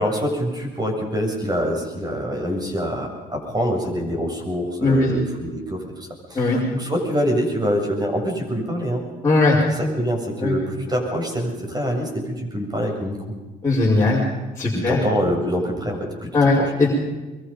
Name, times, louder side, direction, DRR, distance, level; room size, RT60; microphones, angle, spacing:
voice 1, 0.0-9.0 9.7-13.2 14.7-16.7, equal, 25° right, 1 dB, 7.4 m, -25 dB
voice 2, 9.2-9.6 10.4-10.5 13.6-14.2 14.6-15.0 16.3-16.9, left 2 dB, 15° left, -5 dB, 5.7 m, -18 dB
24.0 x 23.5 x 5.4 m, 1.2 s
cardioid pair, 110°, 17 cm